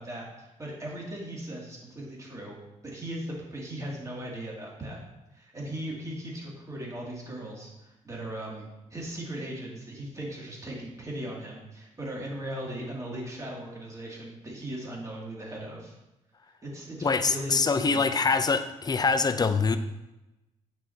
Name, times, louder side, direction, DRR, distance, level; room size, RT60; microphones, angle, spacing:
voice 1, 0.0-2.6 2.8-5.0 5.3-15.9 16.6-18.2, right 1 dB, 25° right, -4 dB, 2.6 m, -38 dB
voice 2, 17.0-19.8, left 4 dB, 30° left, 10 dB, 0.6 m, -24 dB
9.0 x 6.0 x 2.9 m, 0.96 s
cardioid pair, 80°, 13 cm